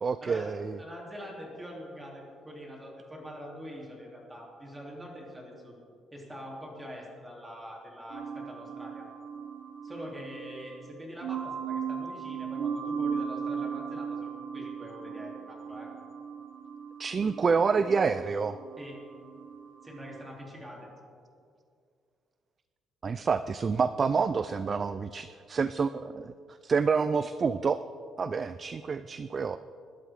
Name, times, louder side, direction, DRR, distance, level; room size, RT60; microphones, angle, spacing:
voice 1, 0.0-0.8 17.0-18.6 23.0-26.3 26.6-27.8 28.2-29.6, right 5 dB, 30° right, 13 dB, 0.3 m, -28 dB
voice 2, 0.8-5.7 6.1-9.1 9.8-15.9 18.8-19.0 19.8-20.9 29.0-29.1, equal, 10° right, -2 dB, 3.1 m, -44 dB
sound 1, 8.1-20.3, right 6 dB, 65° right, 1.0 m, -37 dB
21.0 x 11.5 x 3.7 m, 2.3 s
cardioid pair, 140°, 0 cm